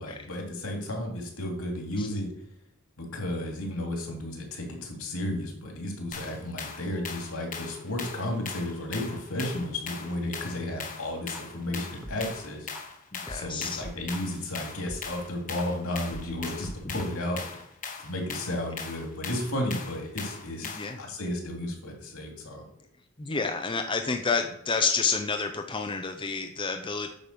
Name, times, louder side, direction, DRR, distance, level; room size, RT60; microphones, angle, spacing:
voice 1, 0.0-2.3 3.0-12.7 13.3-17.6 18.0-22.6, left 1 dB, 75° left, 1 dB, 2.8 m, -33 dB
sound 1, 6.1-21.0, left 6 dB, 40° left, 1.3 m, -40 dB
sound 2, 6.5-10.7, right 3 dB, 75° right, 3.1 m, -55 dB
sound 3, 11.3-11.4 12.0-12.2 12.7-12.8 13.3-15.0 15.6-15.7 16.1-17.0, equal, 5° right, 1.1 m, -41 dB
voice 2, 13.1-13.8 20.6-21.0 23.2-27.1, left 4 dB, 25° left, 5 dB, 0.6 m, -29 dB
9.1 x 5.3 x 6.8 m, 0.76 s
head